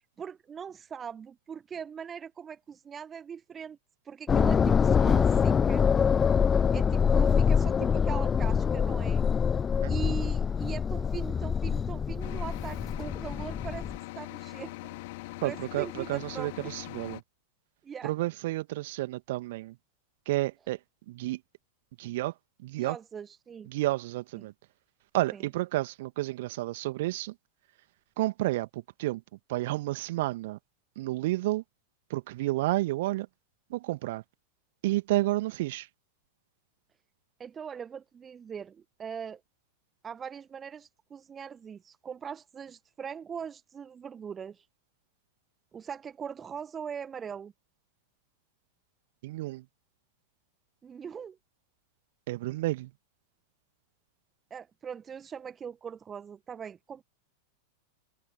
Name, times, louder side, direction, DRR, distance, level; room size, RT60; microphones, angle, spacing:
voice 1, 0.2-3.8 4.0-5.9 6.7-9.2 9.9-13.9 14.1-14.9 15.2-16.7 17.8-18.1 22.8-23.7 25.3-25.4 37.4-39.4 40.0-44.6 45.7-47.5 50.8-51.4 54.5-57.0, right 7 dB, 20° right, 1.3 m, -41 dB
sound 1, 4.3-14.0, left 6 dB, 20° left, 0.4 m, -25 dB
sound 2, 12.2-17.2, left 22 dB, 50° left, 2.7 m, -42 dB
voice 2, 15.4-17.2 18.0-19.8 20.3-20.8 21.1-21.4 22.0-22.3 22.6-23.0 23.7-24.5 25.1-27.3 28.2-29.2 29.5-30.6 31.0-31.6 32.1-33.3 33.7-34.2 34.8-35.9 49.2-49.6 52.3-52.9, right 18 dB, 50° right, 2.0 m, -30 dB
figure-of-eight pair, 90°, 0 cm